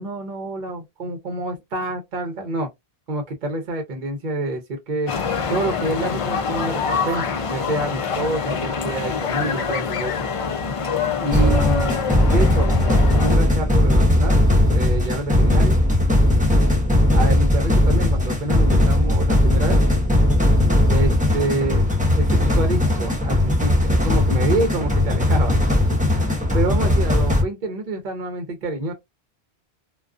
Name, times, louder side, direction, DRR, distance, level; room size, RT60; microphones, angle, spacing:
voice 1, 0.0-2.7 3.1-5.1 5.5-10.1 11.2-14.4 14.7-15.8 17.1-19.8 20.9-21.9 22.2-25.5 26.5-28.9, right 2 dB, 50° right, 0.7 m, -27 dB
sound 1, 5.1-13.4, left 5 dB, 60° left, 0.3 m, -25 dB
sound 2, 11.3-27.4, left 1 dB, 10° right, 0.6 m, -18 dB
2.4 x 2.3 x 2.3 m
omnidirectional pair, 1.1 m